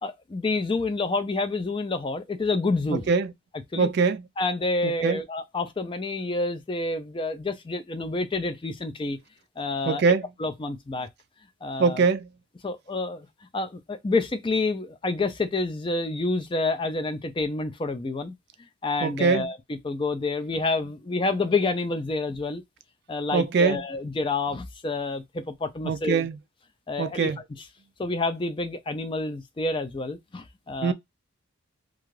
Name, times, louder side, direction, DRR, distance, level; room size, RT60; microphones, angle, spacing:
voice 1, 0.0-3.1 3.7-3.9 4.4-9.2 9.6-10.0 10.4-11.1 11.6-12.0 12.6-13.3 13.5-18.3 18.8-22.6 23.1-26.3 26.9-27.3 28.0-30.9, left 3 dB, 25° left, 0.4 m, -28 dB
voice 2, 2.9-3.3 3.8-4.2 4.8-5.2 9.9-10.3 11.8-12.3 19.0-19.5 23.3-23.8 25.8-26.4 27.0-27.4 30.8-30.9, right 5 dB, 50° right, 0.3 m, -23 dB
2.4 x 2.3 x 3.1 m
head